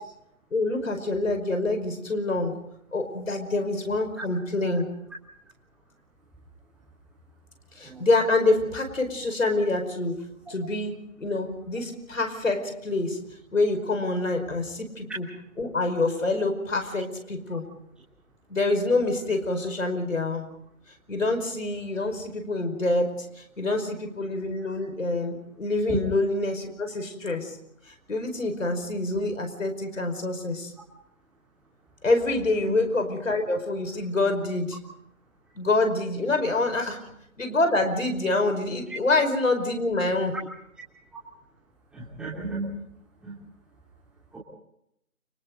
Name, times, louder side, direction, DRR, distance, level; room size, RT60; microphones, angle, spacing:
voice 1, 0.5-2.6 2.9-4.9 7.7-13.2 13.5-15.3 15.6-17.6 18.5-20.5 21.1-27.6 27.9-30.7 32.0-34.8 35.5-37.0 37.4-40.4, left 2 dB, 70° left, 7 dB, 5.2 m, -26 dB
voice 2, 41.9-42.8 43.2-43.3 44.3-44.4, right 3 dB, ahead, -6 dB, 3.1 m, -33 dB
30.0 x 25.0 x 4.0 m, 0.75 s
figure-of-eight pair, 150°, 41 cm